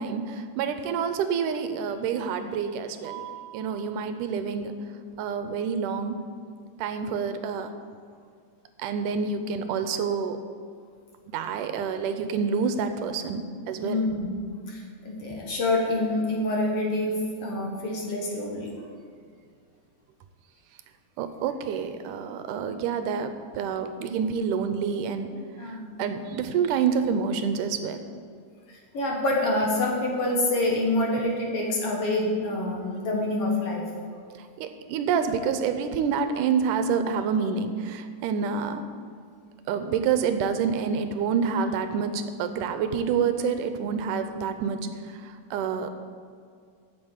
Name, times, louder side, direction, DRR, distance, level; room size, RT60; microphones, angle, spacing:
voice 1, 0.0-4.7 5.2-6.2 6.8-7.7 8.8-10.4 11.3-14.0 21.2-25.3 25.6-28.0 34.6-38.8 39.7-45.9, right 6 dB, 80° right, 9 dB, 2.2 m, -28 dB
voice 2, 13.8-18.7 25.6-25.9 28.9-33.8, left 2 dB, 55° left, -1 dB, 2.1 m, -27 dB
8.9 x 7.2 x 8.0 m, 2.2 s
omnidirectional pair, 3.7 m